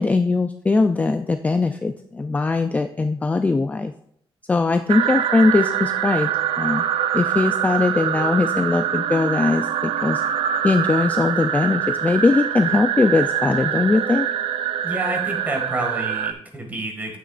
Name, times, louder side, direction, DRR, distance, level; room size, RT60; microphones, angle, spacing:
voice 1, 0.0-3.9 4.5-6.8 7.1-10.2 10.6-14.3, left 3 dB, 15° left, 7 dB, 0.3 m, -20 dB
sound 1, 4.9-16.3, right 9 dB, 85° right, 0.5 m, -24 dB
voice 2, 14.8-17.2, right 1 dB, 20° right, 2 dB, 1.9 m, -29 dB
9.2 x 8.0 x 2.4 m, 0.67 s
cardioid pair, 135°, 9 cm